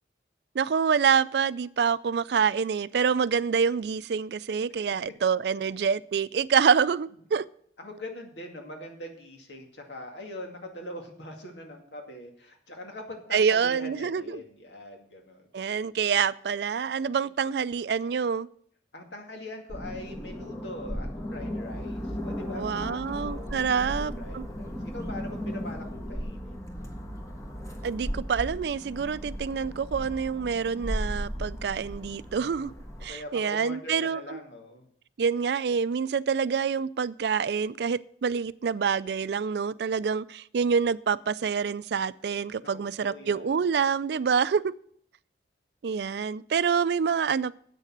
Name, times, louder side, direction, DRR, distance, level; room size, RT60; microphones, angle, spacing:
voice 1, 0.5-7.4 13.3-14.4 15.5-18.5 22.5-24.5 27.8-32.7 33.0-34.4 35.2-44.7 45.8-47.6, right 6 dB, 70° right, 18 dB, 0.4 m, -26 dB
voice 2, 7.8-15.5 18.9-26.6 33.1-34.9 42.6-43.6, left 1 dB, 85° left, 2 dB, 2.2 m, -42 dB
sound 1, 19.7-33.1, equal, 20° left, 1.3 m, -36 dB
8.3 x 6.6 x 7.5 m, 0.63 s
head